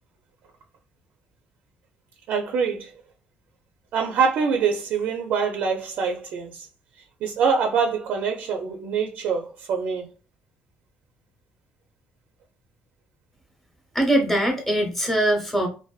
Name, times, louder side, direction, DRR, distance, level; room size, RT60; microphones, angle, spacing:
voice 1, 2.3-2.9 3.9-6.7 7.2-10.1, right 6 dB, 60° right, 0.4 m, -24 dB
voice 2, 13.9-15.7, right 1 dB, 5° left, 0.7 m, -22 dB
2.5 x 2.1 x 2.3 m
cardioid pair, 155°, 3 cm